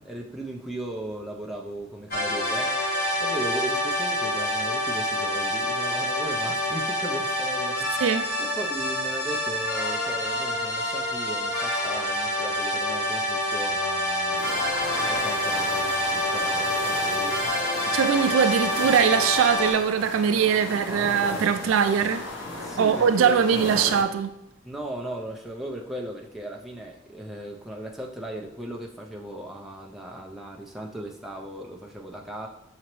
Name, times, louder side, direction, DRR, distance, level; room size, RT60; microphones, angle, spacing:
voice 1, 0.0-2.7 3.2-8.1 8.4-14.6 15.1-17.4 22.5-23.5 24.6-32.5, right 1 dB, ahead, 0.3 m, -37 dB
sound 1, 2.1-19.7, equal, 45° left, 1.0 m, -27 dB
sound 2, 14.3-24.0, left 2 dB, 85° left, 0.7 m, -36 dB
voice 2, 17.9-22.2 22.8-24.3, right 7 dB, 80° right, 0.3 m, -22 dB
6.1 x 2.9 x 3.0 m
head